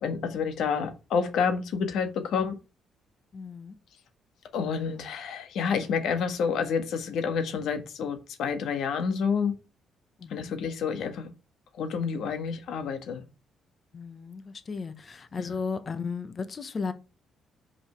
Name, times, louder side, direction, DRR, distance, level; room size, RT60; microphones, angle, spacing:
voice 1, 0.0-2.6 4.5-9.5 10.3-11.3 11.8-13.2 15.4-15.6, left 6 dB, 75° left, 1.5 m, -29 dB
voice 2, 3.3-3.7 10.2-10.6 13.9-16.9, left 5 dB, 40° left, 1.1 m, -35 dB
6.0 x 5.3 x 4.5 m
cardioid pair, 90°, 0 cm